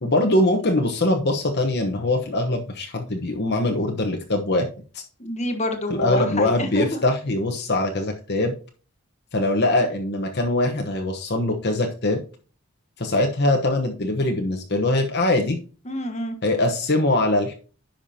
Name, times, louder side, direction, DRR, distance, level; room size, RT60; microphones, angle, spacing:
voice 1, 0.0-4.7 5.9-8.5 9.3-12.2 13.0-15.6 16.4-17.5, left 2 dB, 50° left, 2 dB, 1.1 m, -22 dB
voice 2, 5.2-7.0 15.8-16.3, left 1 dB, 30° left, 6 dB, 1.3 m, -27 dB
10.5 x 5.9 x 2.8 m, 0.36 s
head